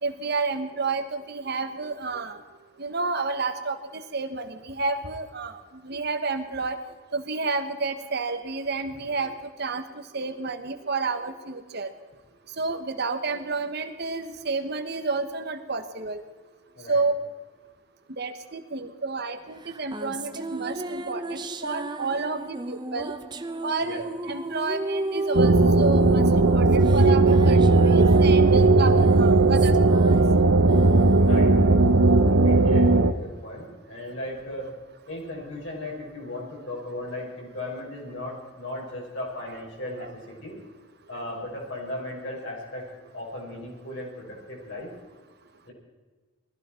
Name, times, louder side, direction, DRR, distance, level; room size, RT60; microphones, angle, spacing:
voice 1, 0.0-2.4 2.8-6.8 7.1-11.9 12.6-16.2 16.9-17.1 18.2-23.1 23.6-29.7 39.5-39.6 40.0-40.1, right 3 dB, 50° right, 8 dB, 1.4 m, -30 dB
sound 1, 19.6-33.3, right 2 dB, 20° right, 0.7 m, -34 dB
sound 2, 25.3-33.1, right 3 dB, 80° right, 0.9 m, -17 dB
voice 2, 31.2-31.8 32.3-34.7 35.1-40.6 41.1-42.9 43.1-44.9 45.6-45.7, left 1 dB, 60° left, -3 dB, 5.8 m, -36 dB
20.0 x 15.0 x 4.5 m, 1.3 s
head